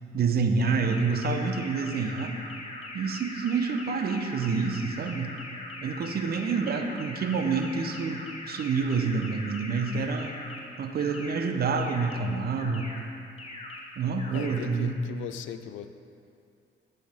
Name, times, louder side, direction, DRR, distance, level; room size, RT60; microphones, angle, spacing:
voice 1, 0.1-2.4 2.9-5.3 5.8-10.4 10.8-12.9 14.0-15.0, right 5 dB, 50° right, 5 dB, 0.7 m, -28 dB
sound 1, 0.6-10.6 11.0-11.4 11.8-12.2 12.6-13.0 13.4-13.8 14.2-14.6, left 2 dB, 30° left, 1.1 m, -41 dB
voice 2, 14.3-15.9, left 10 dB, 80° left, 10 dB, 0.4 m, -39 dB
7.8 x 6.4 x 3.5 m, 2.5 s
cardioid pair, 90°, 20 cm